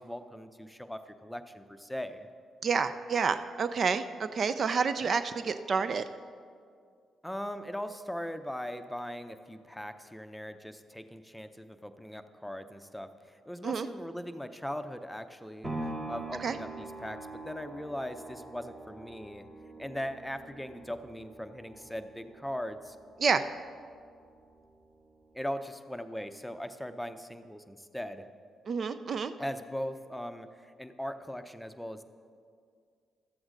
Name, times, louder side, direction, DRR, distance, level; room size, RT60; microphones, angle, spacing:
voice 1, 0.0-2.3 7.2-19.5 19.8-23.0 25.3-28.3 29.4-32.0, equal, 5° left, 9 dB, 0.6 m, -39 dB
voice 2, 2.6-6.1 13.6-13.9 16.4-16.5 23.2-23.4 28.7-29.3, right 5 dB, 55° right, 11 dB, 0.4 m, -29 dB
sound 1, 15.6-23.7 24.2-24.3, right 2 dB, 30° right, 1.9 m, -44 dB
12.5 x 7.8 x 3.8 m, 2.2 s
hypercardioid pair, 45°, 0 cm